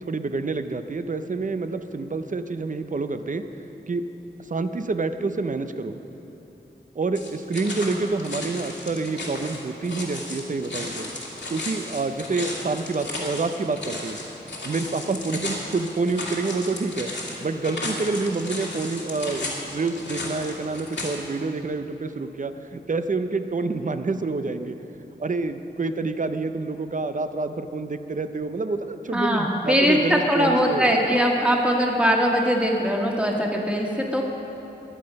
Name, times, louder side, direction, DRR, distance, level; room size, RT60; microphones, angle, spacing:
voice 1, 0.0-3.4 3.9-4.0 4.4-6.0 6.9-11.1 11.5-14.2 14.6-17.1 17.4-24.8 25.2-31.2, right 3 dB, 45° right, 9 dB, 0.7 m, -28 dB
sound 1, 7.1-21.1, left 2 dB, 85° left, 2.3 m, -34 dB
voice 2, 29.1-34.2, equal, 5° right, -1 dB, 1.8 m, -21 dB
21.5 x 7.8 x 5.3 m, 3.0 s
wide cardioid pair, 90°, 18 cm